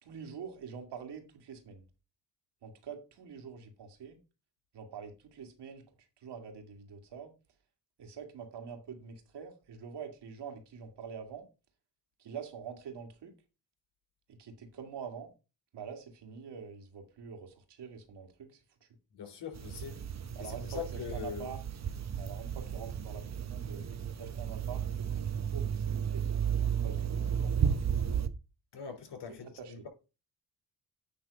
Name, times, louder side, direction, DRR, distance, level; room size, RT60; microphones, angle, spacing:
voice 1, 0.0-1.8 2.6-4.2 4.7-5.8 6.2-7.3 8.0-11.5 12.2-13.3 14.3-15.3 15.7-18.9 20.4-21.6 22.2-23.8 24.2-26.4 26.8-27.8 29.6-29.8, right 6 dB, 75° right, 2.3 m, -46 dB
voice 2, 19.1-20.0 20.4-21.5 28.7-29.9, left 7 dB, 70° left, 3.7 m, -42 dB
sound 1, 19.5-28.3, right 8 dB, 40° right, 0.8 m, -33 dB
9.4 x 3.5 x 5.1 m
cardioid pair, 80°, 42 cm